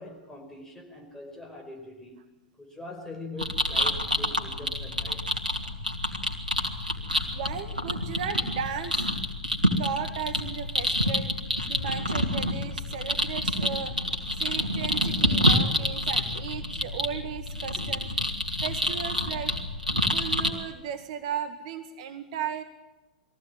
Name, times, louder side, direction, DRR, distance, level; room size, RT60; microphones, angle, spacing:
voice 1, 0.0-2.3 2.6-5.3 17.8-17.9, left 2 dB, 10° left, 2 dB, 5.2 m, -43 dB
sound 1, 3.4-20.5, equal, 90° right, 2.5 m, -28 dB
voice 2, 7.3-9.1 9.8-11.3 11.7-13.9 14.4-18.1 18.6-19.5 20.1-22.6, right 8 dB, 50° right, 7 dB, 1.8 m, -35 dB
22.0 x 15.5 x 9.9 m, 1.1 s
figure-of-eight pair, 100°, 4 cm